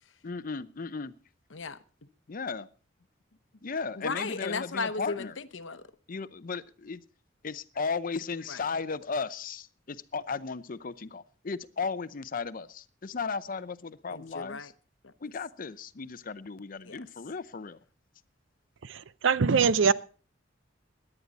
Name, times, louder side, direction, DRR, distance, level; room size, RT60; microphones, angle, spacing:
voice 1, 0.2-1.1 2.3-2.7 3.6-5.3 6.1-7.0 7.4-14.7 15.2-17.8, left 4 dB, 45° left, 0.6 m, -35 dB
voice 2, 1.5-2.1 3.9-5.9 8.5-8.7 14.1-14.7 15.0-15.1 16.8-17.1, left 4 dB, 90° left, 0.9 m, -36 dB
voice 3, 18.8-19.9, right 5 dB, 90° right, 0.6 m, -23 dB
17.5 x 11.0 x 4.1 m
head